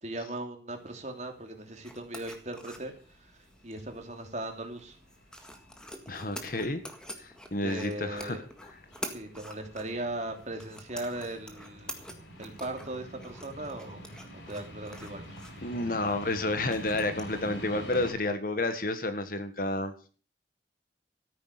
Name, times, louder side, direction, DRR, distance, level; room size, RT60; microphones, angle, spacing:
voice 1, 0.0-3.3 3.6-5.0 7.6-8.4 9.1-12.0 12.4-14.0 14.3-15.2 15.5-15.7, right 1 dB, 40° right, 4 dB, 2.9 m, -38 dB
sound 1, 0.7-18.1, equal, 85° left, 4.5 m, -47 dB
sound 2, 1.8-18.3, equal, 5° left, 1.8 m, -48 dB
voice 2, 6.1-6.8 7.2-8.4 15.6-19.9, left 2 dB, 50° left, 10 dB, 1.5 m, -30 dB
13.5 x 9.9 x 6.7 m, 0.40 s
head